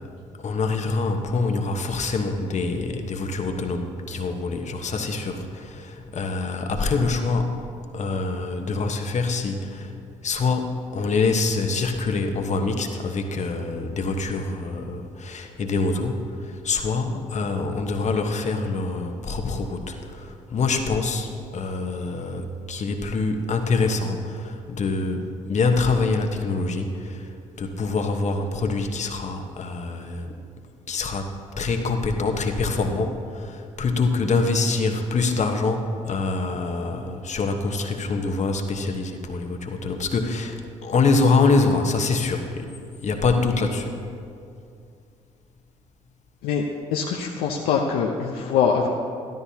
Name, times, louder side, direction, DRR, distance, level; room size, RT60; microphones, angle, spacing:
voice 1, 0.4-7.6 7.9-27.3 27.6-30.3 30.9-44.0, left 3 dB, 50° left, 5 dB, 1.1 m, -25 dB
voice 2, 46.9-48.9, left 6 dB, 75° left, 0 dB, 0.7 m, -23 dB
14.0 x 12.5 x 2.8 m, 2.5 s
hypercardioid pair, 50°, 16 cm